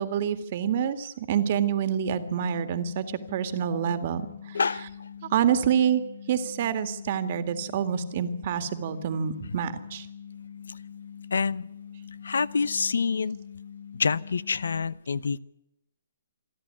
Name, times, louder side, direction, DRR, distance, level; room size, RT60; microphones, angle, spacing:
voice 1, 0.0-3.1 3.3-4.3 4.6-4.9 5.3-6.0 6.3-10.1, right 8 dB, 40° right, 9 dB, 1.9 m, -27 dB
sound 1, 1.6-14.8, left 8 dB, 20° left, 2.6 m, -44 dB
voice 2, 4.5-4.9 11.3-11.7 12.2-13.4 13.9-15.4, left 5 dB, 80° left, 20 dB, 0.8 m, -26 dB
27.5 x 11.0 x 9.7 m, 0.85 s
hypercardioid pair, 160°, 0 cm